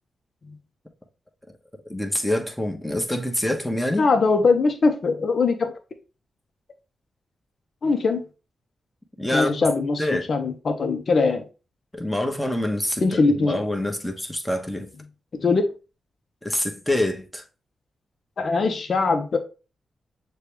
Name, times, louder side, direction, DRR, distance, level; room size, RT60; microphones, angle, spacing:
voice 1, 1.9-4.1 9.2-9.6 10.0-10.3 11.9-14.9 16.4-17.4, left 1 dB, 5° left, 0.9 m, -26 dB
voice 2, 4.0-5.7 7.8-8.3 9.3-11.4 13.0-13.6 15.3-15.6 18.4-19.4, left 4 dB, 60° left, 0.6 m, -21 dB
6.5 x 2.2 x 3.3 m
cardioid pair, 65°, 0 cm